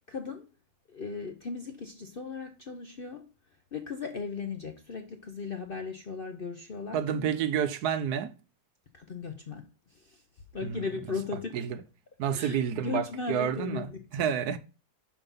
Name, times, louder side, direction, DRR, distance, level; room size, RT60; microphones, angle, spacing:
voice 1, 0.1-0.5 0.9-3.3 3.7-7.4 8.9-10.2 10.5-11.6 12.3-14.3, left 5 dB, 50° left, 0.6 m, -37 dB
voice 2, 6.9-8.3 10.6-10.8 11.5-11.8 12.2-13.9 14.1-14.6, right 8 dB, 75° right, 1.1 m, -29 dB
5.4 x 4.8 x 5.4 m
omnidirectional pair, 1.8 m